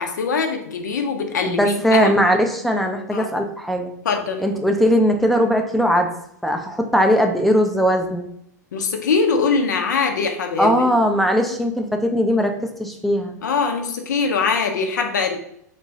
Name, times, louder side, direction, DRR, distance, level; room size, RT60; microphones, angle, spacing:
voice 1, 0.0-2.1 3.1-3.3 4.0-4.5 8.7-10.9 11.4-11.6 13.4-15.4, left 5 dB, 75° left, 4 dB, 0.5 m, -22 dB
voice 2, 1.4-3.9 4.4-6.1 6.4-8.3 10.6-13.4, equal, ahead, 4 dB, 0.4 m, -19 dB
2.9 x 2.2 x 2.6 m, 0.73 s
hypercardioid pair, 95°, 10 cm